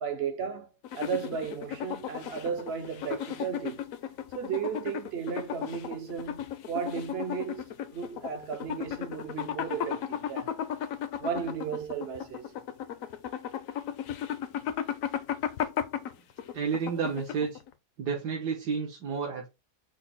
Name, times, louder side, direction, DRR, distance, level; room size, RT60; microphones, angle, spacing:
voice 1, 0.0-3.8 4.3-10.5 11.2-12.6, right 7 dB, 60° right, 0.6 m, -35 dB
sound 1, 0.8-17.7, left 9 dB, 70° left, 0.9 m, -35 dB
voice 2, 16.5-17.5 18.0-19.5, right 6 dB, 90° right, 1.6 m, -30 dB
5.8 x 2.1 x 4.2 m
omnidirectional pair, 1.7 m